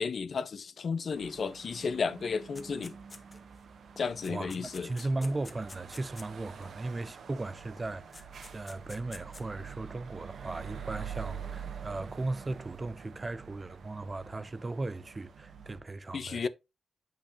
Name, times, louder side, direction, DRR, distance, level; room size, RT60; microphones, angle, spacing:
voice 1, 0.0-2.9 4.0-4.9 16.1-16.5, left 5 dB, 50° left, 0.6 m, -33 dB
sound 1, 1.1-15.8, right 7 dB, 65° right, 1.2 m, -46 dB
sound 2, 2.5-3.6 4.0-6.7 7.8-7.9 8.1-9.5, left 3 dB, 25° left, 1.0 m, -50 dB
voice 2, 4.3-8.3 8.5-16.5, right 2 dB, 25° right, 0.4 m, -37 dB
8.4 x 6.1 x 2.7 m
wide cardioid pair, 135°, 0 cm